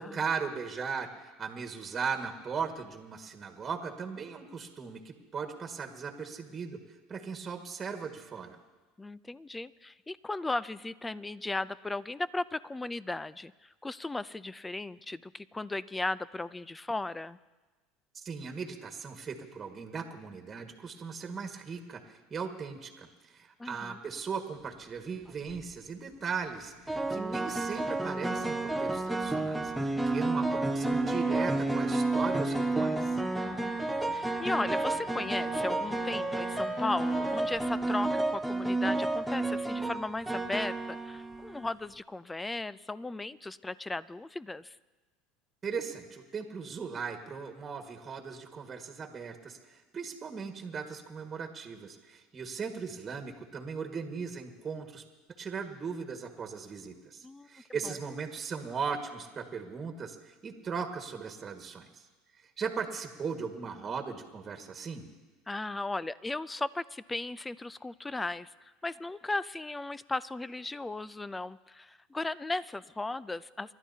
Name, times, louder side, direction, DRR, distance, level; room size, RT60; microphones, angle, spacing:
voice 1, 0.0-6.8 7.1-8.6 18.1-33.2 45.6-55.0 55.4-62.0 62.4-65.1, right 5 dB, 30° right, 3 dB, 1.8 m, -38 dB
voice 2, 9.0-17.4 23.6-24.0 33.4-33.8 34.1-44.8 57.2-57.5 57.8-57.9 65.5-68.5 68.8-73.7, left 2 dB, 15° left, 18 dB, 0.5 m, -36 dB
sound 1, 25.3-25.6 26.9-41.7, right 2 dB, 5° right, 0.9 m, -31 dB
Wind instrument woodwind instrument, 26.2-37.8, left 8 dB, 45° left, 1.3 m, -49 dB
29.0 x 12.0 x 2.8 m, 1.2 s
hypercardioid pair, 85°, 0 cm